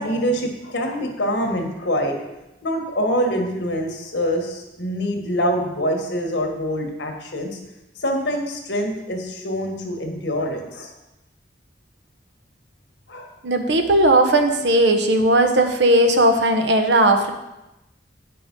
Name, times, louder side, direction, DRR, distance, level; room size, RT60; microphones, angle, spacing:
voice 1, 0.0-2.2 2.6-7.6 8.0-10.9 13.1-13.3, equal, 70° left, 3 dB, 1.6 m, -25 dB
voice 2, 13.4-17.3, right 1 dB, 70° right, 5 dB, 1.0 m, -17 dB
8.8 x 5.9 x 5.3 m, 0.97 s
head